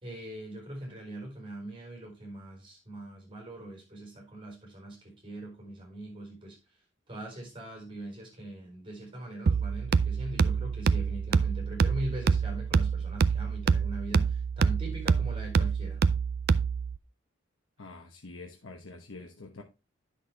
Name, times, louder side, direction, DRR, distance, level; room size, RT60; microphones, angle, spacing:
voice 1, 0.0-6.6 7.1-16.0, right 1 dB, 25° right, 4.3 m, -41 dB
sound 1, 9.5-17.0, right 5 dB, 55° right, 0.4 m, -26 dB
voice 2, 17.8-19.6, left 3 dB, 80° left, 1.1 m, -46 dB
9.8 x 6.4 x 3.4 m
head